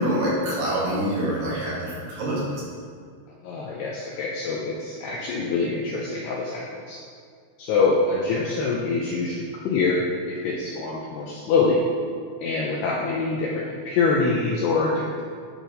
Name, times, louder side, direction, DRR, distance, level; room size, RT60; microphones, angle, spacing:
voice 1, 0.0-2.4, equal, 60° right, -7 dB, 3.8 m, -25 dB
voice 2, 3.4-7.0 7.6-11.8 12.4-15.2, left 4 dB, 90° left, -3 dB, 2.3 m, -25 dB
11.0 x 4.6 x 5.2 m, 2.2 s
omnidirectional pair, 5.7 m